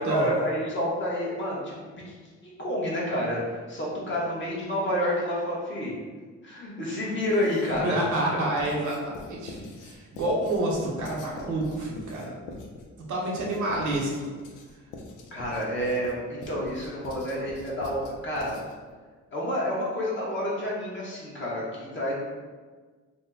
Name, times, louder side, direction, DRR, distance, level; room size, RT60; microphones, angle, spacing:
voice 1, 0.0-1.7 2.1-2.2 2.4-5.9 6.4-8.0 15.3-18.5 19.3-22.1, equal, 40° left, -5 dB, 1.0 m, -29 dB
Writing, 7.2-7.9 8.6-18.9, left 2 dB, 90° left, 0.5 m, -44 dB
voice 2, 7.8-12.4 13.1-14.3, right 1 dB, 70° right, -2 dB, 0.8 m, -28 dB
2.7 x 2.1 x 3.5 m, 1.4 s
cardioid pair, 90°, 30 cm